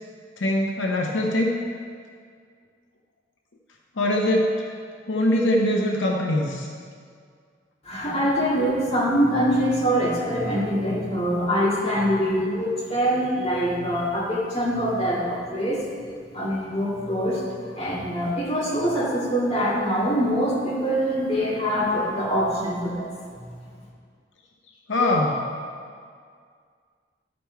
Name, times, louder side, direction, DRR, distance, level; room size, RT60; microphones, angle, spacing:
voice 1, 0.4-1.6 4.0-4.6 5.1-6.7 24.9-25.5, left 1 dB, 85° left, 0 dB, 0.8 m, -22 dB
voice 2, 7.8-15.8 16.3-17.4 17.7-23.1 23.4-23.5, equal, 35° left, -7 dB, 2.2 m, -24 dB
12.5 x 5.3 x 4.5 m, 2.1 s
head